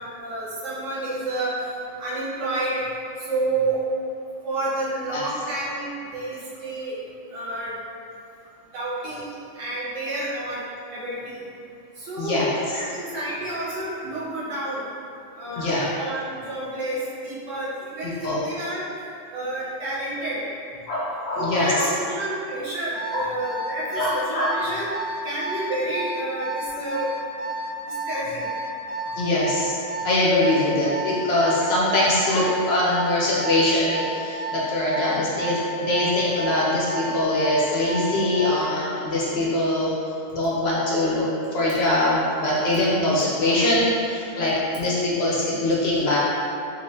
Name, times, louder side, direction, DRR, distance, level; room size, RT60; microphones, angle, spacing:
voice 1, 0.0-1.5 2.0-2.9 3.3-3.8 4.4-7.0 7.3-7.7 8.7-10.6 10.9-11.4 12.0-12.4 12.7-14.9 15.4-18.9 19.3-20.4 21.3-24.9 25.2-27.1 27.9-28.5 31.6-31.7 41.0-41.1, right 2 dB, 75° right, -8 dB, 1.2 m, -30 dB
voice 2, 12.2-12.5 15.5-15.8 18.0-18.4 20.9-21.9 23.1-23.2 24.0-24.5 29.1-29.8 30.0-39.9 40.3-41.2 41.5-46.2, left 1 dB, 65° left, -6 dB, 0.8 m, -22 dB
Alarm, 22.9-38.7, right 2 dB, 55° right, 1.0 m, -31 dB
3.6 x 2.5 x 2.6 m, 2.5 s
omnidirectional pair, 1.3 m